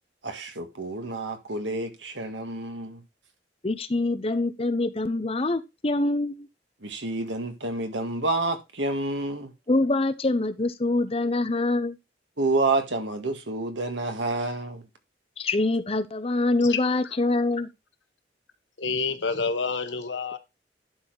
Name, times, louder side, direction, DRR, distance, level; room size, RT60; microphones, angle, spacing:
voice 1, 0.2-3.0 6.8-9.5 12.4-14.8, right 2 dB, 90° right, 1.7 m, -29 dB
voice 2, 3.6-6.5 9.7-12.0 15.4-17.7, left 2 dB, 35° left, 0.8 m, -25 dB
voice 3, 18.8-20.4, left 4 dB, 90° left, 1.2 m, -28 dB
11.0 x 4.2 x 4.7 m
head